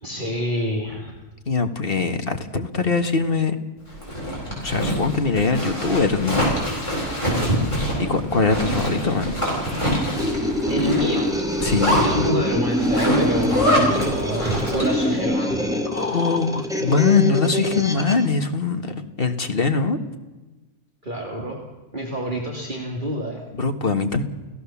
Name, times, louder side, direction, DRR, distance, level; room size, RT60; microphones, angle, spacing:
voice 1, 0.0-1.1 7.3-7.7 10.7-11.3 12.0-15.6 21.0-21.6 21.9-23.4, right 1 dB, 30° right, 0 dB, 2.7 m, -26 dB
voice 2, 1.5-3.6 4.6-6.5 8.0-9.3 11.6-12.0 15.8-20.0 23.5-24.2, left 4 dB, 40° left, 6 dB, 1.7 m, -22 dB
Zipper (clothing), 3.9-15.1, equal, 20° left, 8.2 m, -25 dB
sound 1, 10.1-18.3, equal, ahead, 2.1 m, -25 dB
29.0 x 17.0 x 7.2 m, 1.1 s
omnidirectional pair, 1.6 m